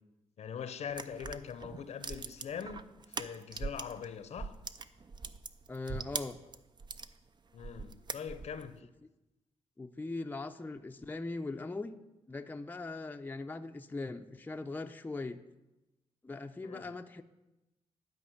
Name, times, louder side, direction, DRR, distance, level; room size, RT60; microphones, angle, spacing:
voice 1, 0.4-2.8 3.1-4.6 7.5-8.9 16.6-16.9, left 7 dB, 65° left, 0.7 m, -42 dB
sound 1, 0.9-4.1 4.3-7.1 7.6-8.7, right 5 dB, 40° right, 0.6 m, -41 dB
voice 2, 5.7-6.4 9.8-12.0 12.3-15.4 16.2-17.2, left 3 dB, 15° left, 0.5 m, -40 dB
11.5 x 5.2 x 7.8 m
cardioid pair, 80°, 12 cm